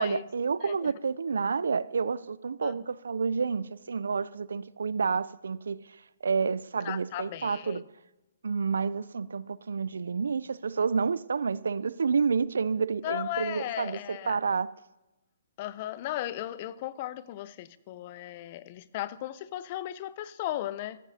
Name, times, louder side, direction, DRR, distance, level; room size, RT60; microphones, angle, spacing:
voice 1, 0.0-5.8 6.2-7.8 8.4-14.7, right 5 dB, 80° right, 0.4 m, -29 dB
voice 2, 0.6-0.9 2.6-2.8 6.8-7.8 13.0-14.4 15.6-21.0, left 13 dB, 40° left, 0.5 m, -36 dB
14.5 x 14.0 x 2.8 m
hypercardioid pair, 145°, 0 cm